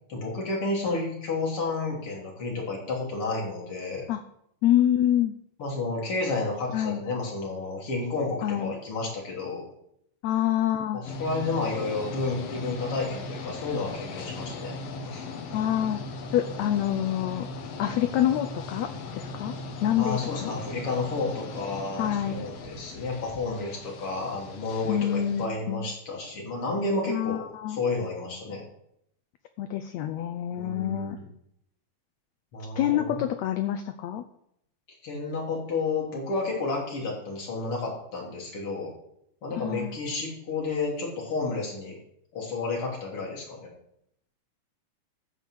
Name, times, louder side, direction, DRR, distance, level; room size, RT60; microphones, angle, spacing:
voice 1, 0.1-4.0 5.6-9.6 10.9-14.7 15.0-15.3 20.0-28.6 30.5-31.3 32.5-33.2 35.0-38.9 39.4-42.0 42.3-43.7, left 3 dB, 40° left, -2 dB, 4.1 m, -31 dB
voice 2, 4.6-5.3 6.7-7.0 8.4-8.7 10.2-11.0 15.5-16.0 16.3-17.5 17.8-19.5 19.8-20.5 22.0-22.5 24.8-25.8 27.1-27.8 29.6-31.2 32.8-34.2 39.5-40.0, left 11 dB, 80° left, 9 dB, 1.6 m, -26 dB
sound 1, 11.0-25.5, left 3 dB, 60° left, 2.0 m, -38 dB
14.0 x 5.4 x 7.9 m, 0.74 s
omnidirectional pair, 3.8 m